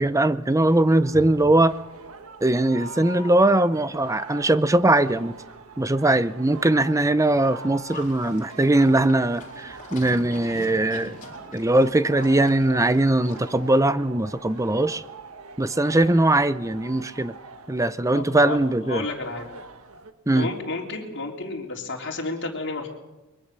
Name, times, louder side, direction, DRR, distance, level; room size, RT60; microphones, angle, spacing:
voice 1, 0.0-1.7 2.4-5.4 5.8-11.2 11.5-15.0 15.6-17.3 17.7-19.0 20.3-20.5, right 1 dB, 15° right, 14 dB, 0.6 m, -20 dB
sound 1, 0.7-20.1, right 3 dB, 75° right, 1.5 m, -43 dB
Livestock farm animals working animals, 7.9-13.7, left 1 dB, 40° left, 4.4 m, -43 dB
voice 2, 18.1-19.5 20.3-22.9, left 3 dB, 55° left, 0 dB, 3.6 m, -31 dB
22.5 x 21.5 x 6.7 m, 1.1 s
head